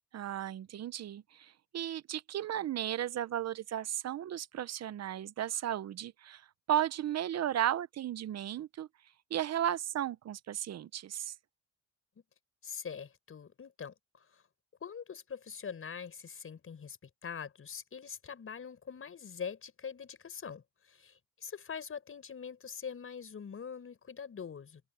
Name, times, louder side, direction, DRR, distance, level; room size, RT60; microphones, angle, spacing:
voice 1, 0.1-6.4 6.7-8.9 9.3-11.3, right 11 dB, 60° right, 0.8 m, -34 dB
voice 2, 12.6-14.4 14.8-24.8, left 6 dB, 45° left, 6.0 m, -44 dB
open air
cardioid pair, 90°, 30 cm